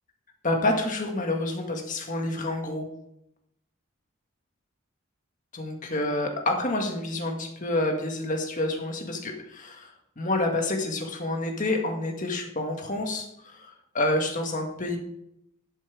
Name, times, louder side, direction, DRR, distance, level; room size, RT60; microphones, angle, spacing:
voice 1, 0.4-2.8 5.5-15.0, left 2 dB, 40° left, 2 dB, 1.7 m, -28 dB
11.5 x 5.9 x 4.7 m, 0.79 s
head